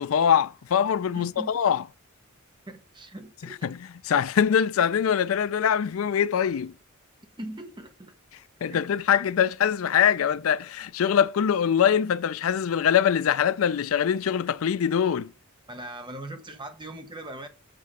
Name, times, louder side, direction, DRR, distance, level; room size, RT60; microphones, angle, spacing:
voice 1, 0.0-1.8 3.6-6.7 8.6-15.3, left 8 dB, 80° left, 0.4 m, -23 dB
voice 2, 1.1-1.5 2.7-3.7 7.4-8.1 8.7-8.8 15.7-17.5, right 1 dB, 25° right, 1.3 m, -40 dB
7.7 x 3.5 x 6.1 m
head